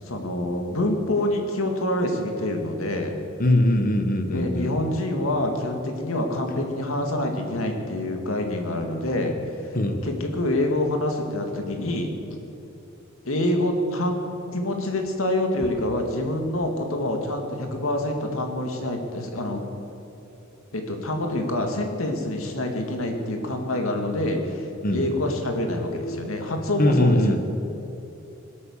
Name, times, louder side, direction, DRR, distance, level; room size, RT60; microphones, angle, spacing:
voice 1, 0.0-3.2 4.3-9.8 10.0-12.4 13.2-14.2 14.5-19.6 20.7-27.4, left 1 dB, 85° left, 3 dB, 2.2 m, -26 dB
voice 2, 3.4-4.7 9.7-10.1 24.8-25.0 26.0-26.3 26.8-27.4, left 1 dB, 45° left, 6 dB, 1.3 m, -21 dB
21.5 x 8.7 x 7.4 m, 2.8 s
head